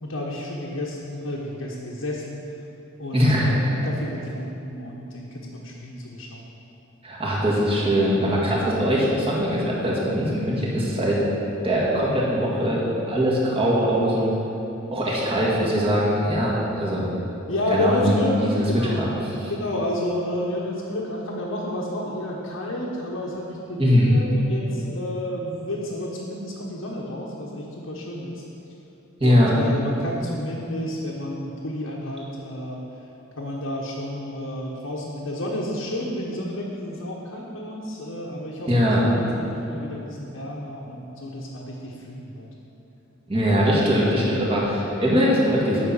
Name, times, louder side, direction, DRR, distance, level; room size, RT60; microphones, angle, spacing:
voice 1, 0.0-2.4 3.0-6.4 17.5-19.1 19.5-28.4 29.2-32.8 33.4-42.5, left 1 dB, 80° left, -5 dB, 1.2 m, -31 dB
voice 2, 3.1-3.5 7.0-11.2 11.6-14.3 14.9-17.1 17.7-18.1 18.4-18.6 19.0-19.1 23.8-24.1 29.2-29.5 38.7-39.0 43.3-45.8, equal, 25° right, -6 dB, 1.9 m, -21 dB
8.7 x 5.7 x 7.1 m, 3.0 s
head